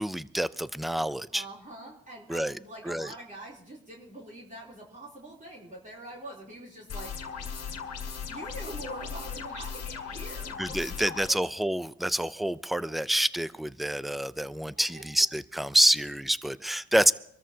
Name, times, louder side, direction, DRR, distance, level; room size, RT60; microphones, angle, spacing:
voice 1, 0.0-1.4 2.3-2.6 2.8-3.1 10.6-17.1, right 1 dB, ahead, 16 dB, 0.4 m, -27 dB
voice 2, 1.3-7.2 8.3-11.3 14.8-15.0, right 1 dB, 25° right, -4 dB, 3.4 m, -44 dB
sound 1, 6.9-11.3, left 6 dB, 55° left, 2.0 m, -37 dB
25.5 x 13.5 x 2.8 m, 0.72 s
cardioid pair, 90°, 30 cm